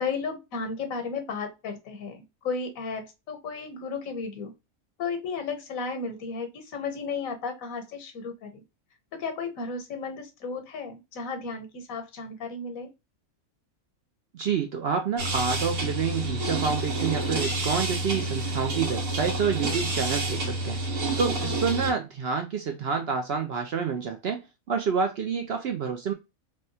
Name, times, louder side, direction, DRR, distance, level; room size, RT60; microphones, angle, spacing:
voice 1, 0.0-4.5 5.0-8.6 9.1-12.9 21.4-21.6, left 4 dB, 80° left, 1.2 m, -34 dB
voice 2, 14.3-20.8 21.2-26.1, right 6 dB, 65° right, 0.7 m, -28 dB
sound 1, 15.2-21.9, right 2 dB, 80° right, 1.7 m, -29 dB
3.4 x 2.2 x 2.6 m
omnidirectional pair, 1.4 m